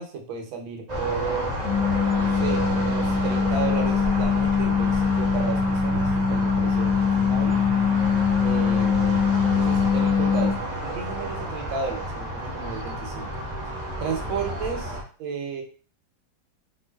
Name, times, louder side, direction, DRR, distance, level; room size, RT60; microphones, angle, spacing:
voice 1, 0.0-1.5 2.1-7.6 8.4-10.6 10.8-13.3 14.0-14.9 15.2-15.6, right 5 dB, 75° right, 3 dB, 1.5 m, -33 dB
sound 1, 0.9-15.0, equal, 40° right, 0.5 m, -30 dB
sound 2, 1.6-10.5, left 6 dB, 50° left, 0.9 m, -23 dB
4.1 x 3.1 x 2.2 m, 0.39 s
omnidirectional pair, 2.2 m